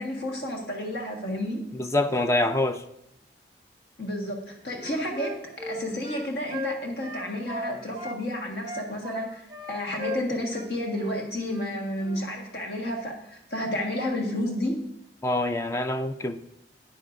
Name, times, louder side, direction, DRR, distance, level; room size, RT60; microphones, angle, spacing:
voice 1, 0.0-1.6 4.0-5.3 5.6-14.8, left 1 dB, 60° left, 1 dB, 1.6 m, -31 dB
voice 2, 1.7-2.8 15.2-16.4, left 2 dB, 15° left, 9 dB, 0.3 m, -25 dB
Wind instrument woodwind instrument, 4.7-8.2 8.6-10.7 10.9-11.1 11.5-11.7 12.0-12.2, left 1 dB, 25° right, 0.8 m, -36 dB
11.0 x 10.0 x 2.6 m, 0.80 s
head